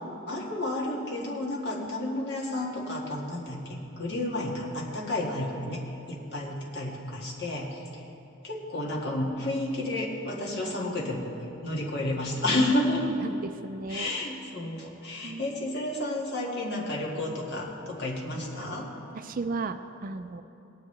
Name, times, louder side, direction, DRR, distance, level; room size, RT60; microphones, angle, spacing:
voice 1, 0.3-8.0 8.4-11.3 11.6-13.1 13.9-18.9, left 1 dB, 55° left, -3 dB, 1.8 m, -31 dB
voice 2, 13.0-14.1 15.2-15.8 19.1-20.4, right 3 dB, 40° right, 9 dB, 0.4 m, -35 dB
18.0 x 9.6 x 3.3 m, 3.0 s
head